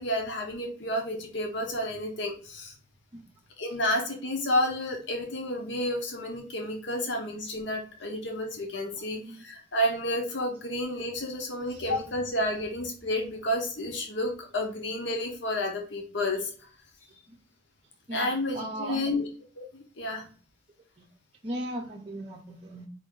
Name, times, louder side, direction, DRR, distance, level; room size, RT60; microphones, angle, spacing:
voice 1, 0.0-2.7 3.6-16.7 18.1-19.3 19.6-20.3, left 1 dB, 65° left, 2 dB, 0.9 m, -31 dB
voice 2, 9.0-9.4 11.7-11.9 17.3-17.4 18.1-19.0 21.0-21.1 21.4-22.9, right 1 dB, 30° right, -2 dB, 0.6 m, -37 dB
4.8 x 2.6 x 3.7 m, 0.42 s
head